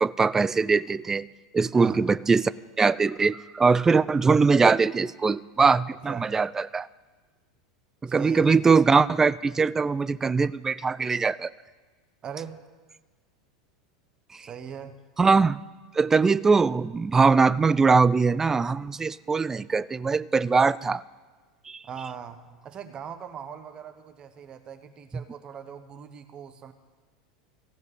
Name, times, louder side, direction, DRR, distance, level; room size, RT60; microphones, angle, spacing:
voice 1, 0.0-1.3 1.5-2.5 2.8-6.9 8.0-11.5 15.2-15.6 15.9-21.0 21.7-21.8, right 4 dB, 15° right, 18 dB, 0.4 m, -21 dB
voice 2, 8.1-8.5 12.2-12.6 14.4-15.0 21.8-26.7, right 8 dB, 30° right, 8 dB, 1.1 m, -40 dB
15.5 x 8.0 x 9.1 m, 1.4 s
figure-of-eight pair, 85°, 3 cm